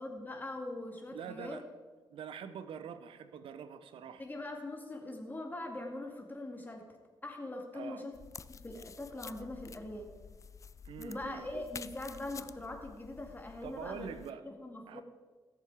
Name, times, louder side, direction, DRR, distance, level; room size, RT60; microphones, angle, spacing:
voice 1, 0.0-1.6 4.2-6.9 7.2-8.2 8.5-10.1 11.0-15.0, left 2 dB, 20° left, 2 dB, 2.1 m, -42 dB
voice 2, 1.1-1.6 2.1-4.2 7.7-8.0 10.8-11.8 13.6-14.4 14.9-15.0, right 7 dB, 85° right, 11 dB, 0.7 m, -45 dB
sound 1, 8.1-14.3, left 6 dB, 35° left, 0.4 m, -50 dB
16.0 x 6.8 x 4.8 m, 1.4 s
cardioid pair, 95°, 9 cm